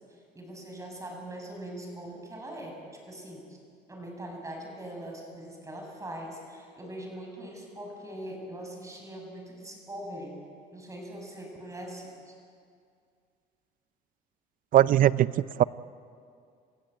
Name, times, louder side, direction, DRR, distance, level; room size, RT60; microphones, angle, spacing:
voice 1, 0.1-2.8 3.1-3.6 3.9-10.4 10.7-12.3, right 1 dB, 20° right, 1 dB, 7.4 m, -41 dB
voice 2, 14.7-15.6, right 12 dB, 55° right, 18 dB, 0.6 m, -21 dB
28.0 x 15.5 x 9.1 m, 2.3 s
cardioid pair, 110°, 17 cm